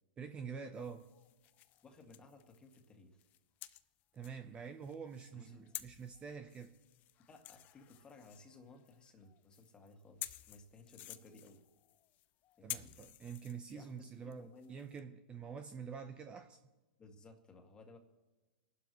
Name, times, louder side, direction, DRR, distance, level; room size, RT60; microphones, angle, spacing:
voice 1, 0.2-1.1 4.1-6.7 12.6-16.6, right 6 dB, 20° right, 7 dB, 0.8 m, -47 dB
sound 1, 0.7-2.9 3.2-15.0, left 15 dB, 35° left, 0.6 m, -52 dB
voice 2, 1.8-3.2 5.3-5.7 7.3-11.6 12.6-13.0 13.7-14.9 17.0-18.0, left 3 dB, 20° left, 3 dB, 2.1 m, -58 dB
29.0 x 11.5 x 3.1 m, 1.2 s
hypercardioid pair, 125°, 5 cm